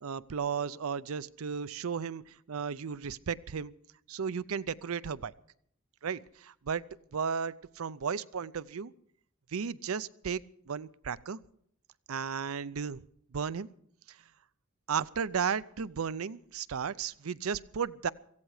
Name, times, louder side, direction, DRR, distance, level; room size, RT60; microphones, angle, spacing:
voice 1, 0.0-3.7 4.1-5.3 6.0-6.8 7.1-8.9 9.5-11.4 12.1-13.0 13.3-13.7 14.9-18.1, right 6 dB, 90° right, 17 dB, 0.5 m, -34 dB
17.0 x 15.5 x 4.9 m, 0.67 s
head